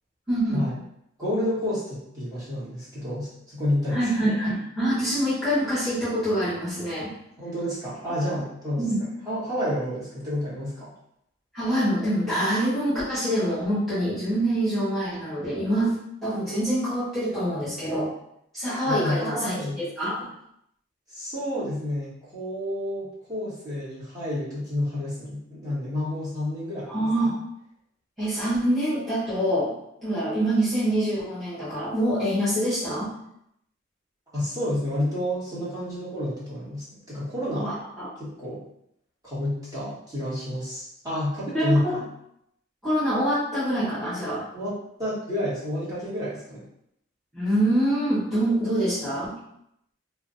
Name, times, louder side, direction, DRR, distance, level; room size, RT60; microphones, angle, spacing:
voice 1, 0.3-0.7 3.9-7.1 8.8-9.0 11.5-18.1 18.5-20.3 26.9-27.4 28.2-29.7 30.0-33.1 37.6-38.1 41.5-42.0 42.8-44.4 47.3-49.3, right 1 dB, ahead, -11 dB, 0.9 m, -25 dB
voice 2, 1.2-4.0 7.4-8.8 9.3-10.9 18.8-19.8 21.1-27.0 34.3-37.7 38.2-38.6 39.2-42.0 44.5-44.7 45.0-46.6, left 1 dB, 20° right, -10 dB, 1.3 m, -29 dB
2.4 x 2.2 x 3.8 m, 0.75 s
head